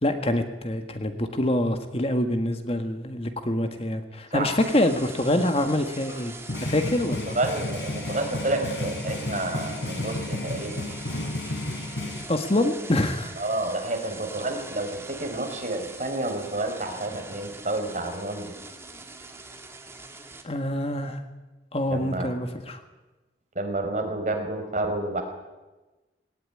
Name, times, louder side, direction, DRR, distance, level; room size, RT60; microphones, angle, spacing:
voice 1, 0.0-6.3 6.6-7.4 12.3-13.3 20.4-21.2 21.7-22.8, left 1 dB, 35° left, 7 dB, 1.7 m, -25 dB
sound 1, 4.6-20.4, right 3 dB, 15° right, 2.1 m, -43 dB
sound 2, 4.7-5.0 6.1-12.3, left 1 dB, 90° left, 3.7 m, -32 dB
voice 2, 7.3-10.9 13.4-18.4 21.9-22.4 23.5-25.2, right 2 dB, 45° right, 3 dB, 4.5 m, -29 dB
20.0 x 18.5 x 10.0 m, 1.2 s
head